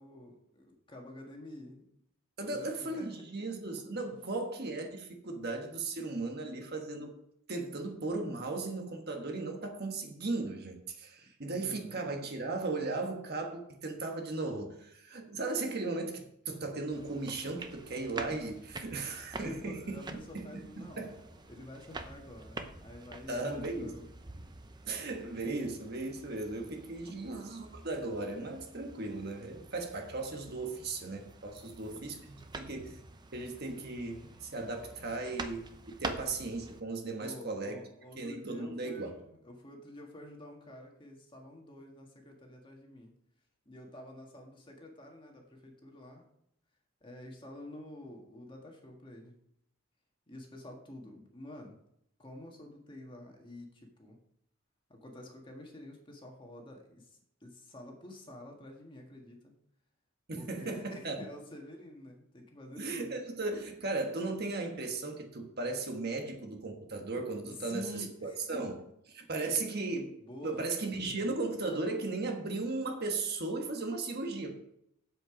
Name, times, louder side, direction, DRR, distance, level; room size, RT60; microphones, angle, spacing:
voice 1, 0.0-1.9 2.5-3.1 11.5-12.0 19.4-21.0 21.5-24.1 27.0-27.2 31.6-32.2 37.2-43.1 43.6-46.2 47.0-49.3 50.3-51.8 52.2-54.2 54.9-59.5 60.4-63.1 67.4-68.4 70.2-70.6 71.0-71.2, left 1 dB, 25° left, 1 dB, 1.7 m, -48 dB
voice 2, 2.4-7.1 7.5-21.1 23.3-23.9 24.8-33.0 33.3-37.8 38.2-39.1 60.3-61.2 62.7-68.8 69.1-70.1 70.4-74.6, right 3 dB, 50° right, 3 dB, 1.4 m, -36 dB
sound 1, 16.9-36.8, right 2 dB, 20° right, 0.6 m, -47 dB
8.0 x 7.8 x 5.0 m, 0.74 s
head